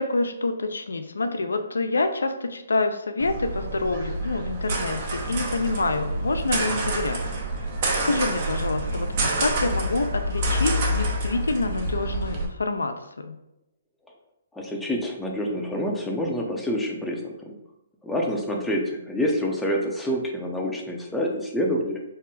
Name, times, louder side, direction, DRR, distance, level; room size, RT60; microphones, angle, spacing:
voice 1, 0.0-7.2 8.0-13.4, left 3 dB, 85° left, 8 dB, 0.4 m, -27 dB
sound 1, 3.2-12.4, right 1 dB, 45° right, 0.8 m, -27 dB
voice 2, 14.5-17.6 18.0-22.0, equal, 5° left, -1 dB, 0.6 m, -27 dB
3.6 x 2.1 x 4.1 m, 0.89 s
hypercardioid pair, 140°, 0 cm